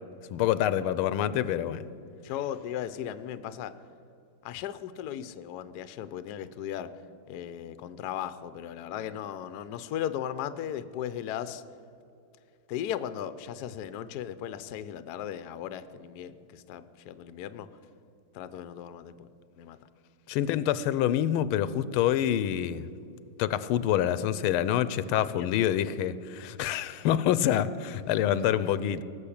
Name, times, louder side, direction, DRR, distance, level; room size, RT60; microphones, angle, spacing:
voice 1, 0.3-1.8 20.3-22.9 23.4-29.0, left 11 dB, 85° left, 16 dB, 1.5 m, -26 dB
voice 2, 2.2-3.7 4.4-6.9 7.3-11.6 12.7-17.7 18.3-19.3 19.6-19.8 25.1-25.5, left 10 dB, 70° left, 13 dB, 1.0 m, -37 dB
18.0 x 7.2 x 8.6 m, 2.7 s
omnidirectional pair, 2.3 m